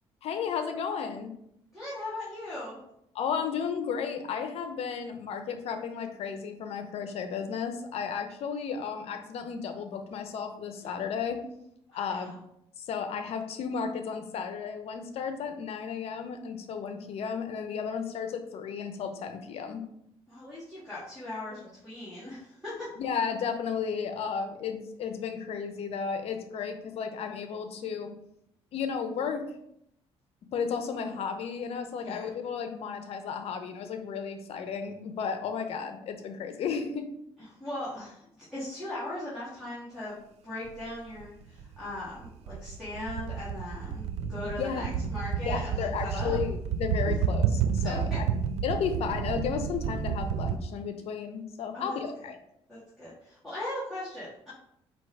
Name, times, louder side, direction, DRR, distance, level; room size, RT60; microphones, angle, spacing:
voice 1, 0.2-1.3 3.1-11.4 11.9-12.4 12.8-19.8 23.0-28.1 28.7-29.4 30.5-37.1 44.6-44.9 45.5-48.2 48.6-52.4, left 6 dB, 65° left, 7 dB, 0.6 m, -33 dB
voice 2, 1.7-2.8 10.8-11.0 11.9-12.3 20.3-22.9 32.0-32.3 37.5-38.3 38.5-40.2 40.4-46.4 47.8-48.2 51.7-52.0 52.7-54.5, left 1 dB, 5° right, -10 dB, 1.7 m, -39 dB
sound 1, 40.7-40.8 41.2-50.6, right 7 dB, 75° right, 0.4 m, -30 dB
4.6 x 2.8 x 3.2 m, 0.75 s
cardioid pair, 100°, 11 cm